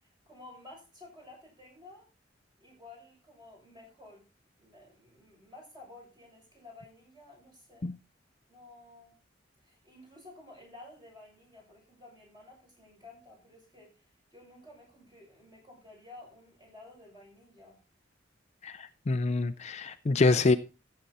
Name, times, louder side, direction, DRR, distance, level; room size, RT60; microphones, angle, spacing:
voice 1, 0.0-2.1 2.6-4.2 4.6-7.9 8.5-9.2 9.6-13.9 14.3-17.8, left 2 dB, 25° right, -2 dB, 6.9 m, -53 dB
voice 2, 18.6-20.6, left 3 dB, 35° left, 11 dB, 0.5 m, -26 dB
14.5 x 7.8 x 4.2 m, 0.32 s
head